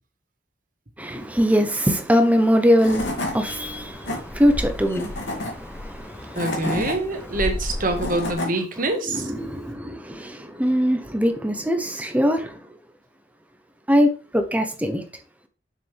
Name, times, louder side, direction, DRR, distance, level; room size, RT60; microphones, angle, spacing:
voice 1, 1.0-6.8 8.1-8.2 9.0-12.6 13.9-15.0, equal, 10° right, 6 dB, 1.0 m, -22 dB
Tools / Wood, 2.4-2.5 2.8-3.3 3.8-4.2 4.9-5.5 6.1-6.9 7.7-8.5, left 1 dB, 90° left, 2.6 m, -29 dB
sound 1, 2.9-8.3, left 1 dB, 15° left, 0.4 m, -35 dB
voice 2, 6.3-9.3, right 2 dB, 50° right, 5 dB, 1.6 m, -25 dB
6.8 x 6.5 x 3.5 m, 0.36 s
head